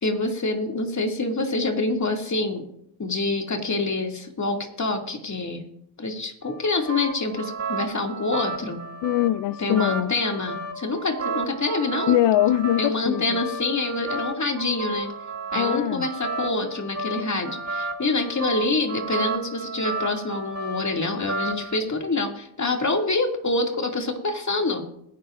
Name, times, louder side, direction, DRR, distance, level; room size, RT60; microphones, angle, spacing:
voice 1, 0.0-2.6 3.0-5.6 6.0-8.8 9.6-12.2 12.8-15.1 15.5-24.9, left 3 dB, 35° left, 2 dB, 2.6 m, -26 dB
sound 1, 6.4-21.8, right 3 dB, 30° right, 2.5 m, -33 dB
voice 2, 9.0-10.1 12.1-13.4 15.6-16.1, left 13 dB, 65° left, 17 dB, 0.5 m, -22 dB
20.5 x 10.5 x 2.6 m, 0.73 s
cardioid pair, 70°, 47 cm